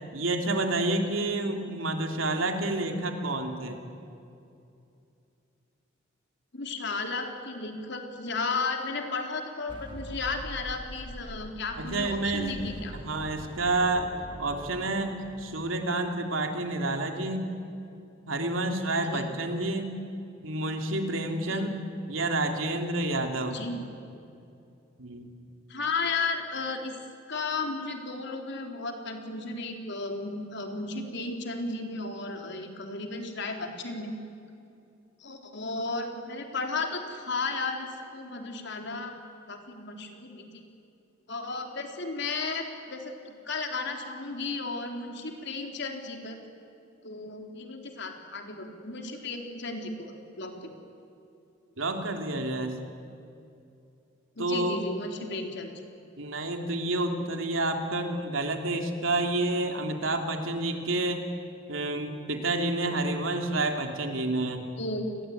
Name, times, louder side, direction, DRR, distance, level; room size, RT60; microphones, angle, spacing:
voice 1, 0.1-3.8 11.7-12.5 12.9-14.1 14.4-17.5 18.3-20.0 20.4-21.8 22.1-23.6 25.0-25.3 51.8-52.8 54.4-54.8 56.2-61.2 61.7-64.6, right 2 dB, 85° right, 4 dB, 3.2 m, -29 dB
voice 2, 6.5-13.0 19.0-19.3 21.5-21.6 23.5-23.8 25.7-27.0 27.3-34.1 35.2-39.1 39.5-40.6 41.3-46.4 47.0-50.7 54.4-55.7 64.8-65.0, left 3 dB, 60° left, 4 dB, 3.7 m, -34 dB
sound 1, 9.7-15.9, equal, 25° right, 3.0 m, -43 dB
29.5 x 20.5 x 9.5 m, 2.6 s
head